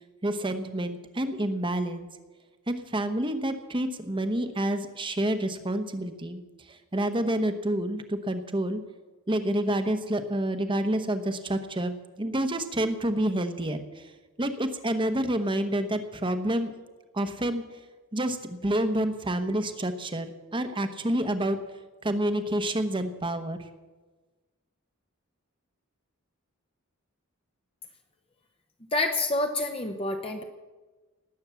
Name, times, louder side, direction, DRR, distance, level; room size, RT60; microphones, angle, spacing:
voice 1, 0.2-2.1 2.7-6.4 6.9-8.8 9.3-13.8 14.4-16.7 17.1-17.6 18.1-21.6 22.0-23.6, right 1 dB, 25° right, 9 dB, 1.1 m, -28 dB
voice 2, 28.9-30.4, left 2 dB, 25° left, 4 dB, 0.9 m, -28 dB
19.0 x 8.9 x 7.1 m, 1.3 s
head